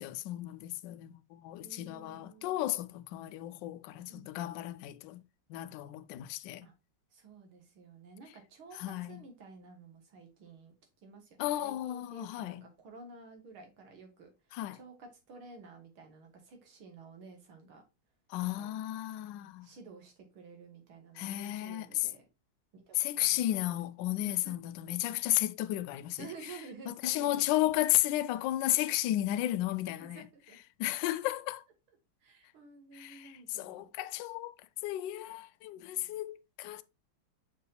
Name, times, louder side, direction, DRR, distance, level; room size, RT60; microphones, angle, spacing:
voice 1, 0.0-5.2 5.5-6.7 8.7-9.2 11.4-12.6 14.5-14.8 18.3-19.7 21.2-22.1 22.9-26.3 26.9-30.3 30.8-31.6 32.9-34.5 34.8-36.8, left 15 dB, 75° left, 1.1 m, -33 dB
voice 2, 1.6-2.6 4.1-4.2 6.6-6.7 7.1-10.7 11.0-14.3 14.7-17.8 18.4-18.7 19.6-22.3 22.7-23.6 24.2-24.5 26.2-27.4 29.9-30.6 32.2-33.9 35.9-36.2, right 4 dB, 85° right, 2.5 m, -52 dB
6.2 x 4.6 x 3.3 m
omnidirectional pair, 2.2 m